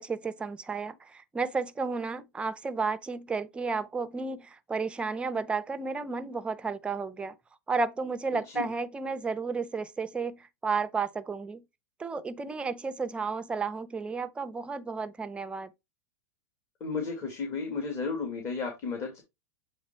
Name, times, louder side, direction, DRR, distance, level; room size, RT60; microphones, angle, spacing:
voice 1, 0.0-7.3 7.7-11.6 12.0-15.7, right 4 dB, 10° right, 0.6 m, -32 dB
voice 2, 16.8-19.2, left 4 dB, 30° left, 2.1 m, -33 dB
7.9 x 3.4 x 4.4 m
hypercardioid pair, 135°, 9 cm